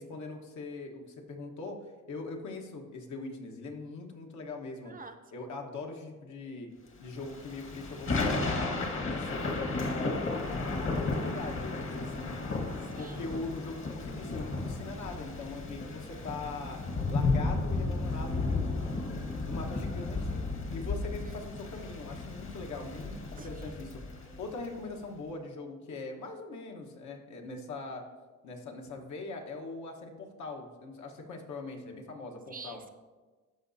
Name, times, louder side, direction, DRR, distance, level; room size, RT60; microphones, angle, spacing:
voice 1, 0.0-1.8 2.1-4.9 5.3-6.7 7.0-10.2 10.7-12.4 13.0-16.8 17.1-20.4 20.7-24.0 24.4-28.0 28.4-32.8, left 3 dB, 70° left, 2 dB, 1.2 m, -41 dB
voice 2, 4.8-5.5 12.9-13.2 21.0-21.3 23.4-23.7 32.5-32.9, right 4 dB, 30° right, 7 dB, 0.5 m, -48 dB
Thunder / Rain, 7.2-24.7, left 3 dB, 40° left, 1.2 m, -33 dB
13.0 x 4.8 x 2.7 m, 1.3 s
cardioid pair, 90°, 30 cm